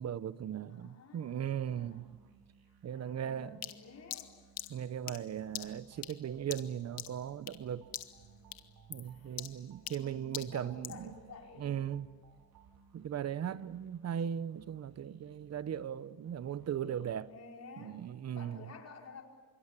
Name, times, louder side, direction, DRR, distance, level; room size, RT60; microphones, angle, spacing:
voice 1, 0.0-2.1 2.8-3.7 4.7-7.9 8.9-11.1 11.6-12.1 12.9-17.3 17.8-18.7, right 9 dB, 45° right, 1.0 m, -38 dB
voice 2, 0.7-2.3 2.6-4.4 5.0-5.2 5.9-6.0 9.0-9.4 9.8-11.7 17.3-18.0 18.3-19.2, left 4 dB, 50° left, 4.8 m, -53 dB
sound 1, 1.7-17.2, right 5 dB, 90° right, 4.2 m, -64 dB
sound 2, 3.6-7.7 7.9-8.3 8.5-11.1, left 13 dB, 85° left, 1.4 m, -44 dB
sound 3, 5.5-12.8, right 8 dB, 65° right, 2.3 m, -62 dB
28.5 x 25.5 x 7.5 m
cardioid pair, 125°, 35 cm